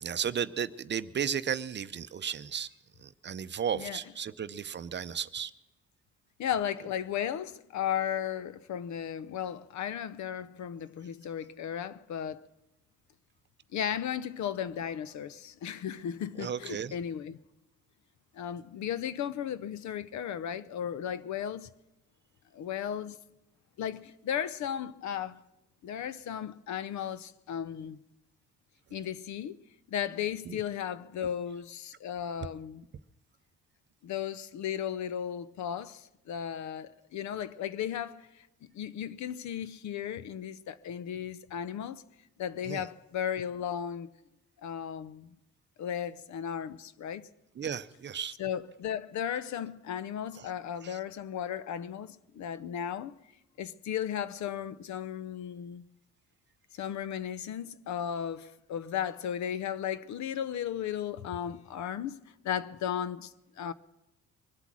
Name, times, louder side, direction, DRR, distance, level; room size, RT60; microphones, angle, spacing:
voice 1, 0.0-2.7 3.2-5.5 16.4-16.9 30.5-30.6 42.7-42.8 47.6-48.3 50.8-51.0, right 8 dB, 35° right, 0.6 m, -34 dB
voice 2, 6.4-12.4 13.7-17.4 18.3-21.7 22.5-23.2 23.8-25.4 25.8-28.0 28.9-29.6 29.9-32.8 34.0-42.0 42.4-44.1 44.6-45.3 45.8-47.3 48.4-53.2 53.6-55.8 56.7-63.7, left 9 dB, 70° left, 0.7 m, -35 dB
23.0 x 8.2 x 6.1 m
cardioid pair, 90°, 30 cm